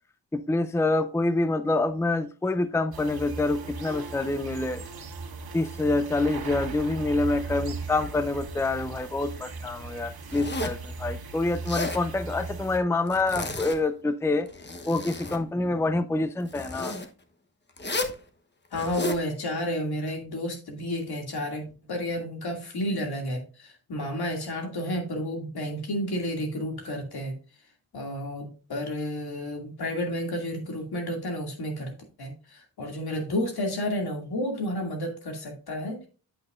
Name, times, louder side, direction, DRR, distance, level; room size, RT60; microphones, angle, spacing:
voice 1, 0.3-4.8 5.5-14.5 14.9-16.9, left 2 dB, 5° left, 12 dB, 0.5 m, -26 dB
sound 1, 2.9-12.8, right 4 dB, 75° right, 1.7 m, -38 dB
Zipper (clothing), 10.3-10.9 11.5-12.0 13.1-13.8 14.4-15.4 16.5-17.1 17.8-18.2 18.7-19.2, left 2 dB, 30° left, 1.1 m, -33 dB
voice 2, 18.7-27.3 27.9-31.9 32.2-36.1, left 1 dB, 80° left, 3 dB, 2.5 m, -31 dB
8.7 x 8.1 x 2.5 m, 0.35 s
cardioid pair, 75°, 38 cm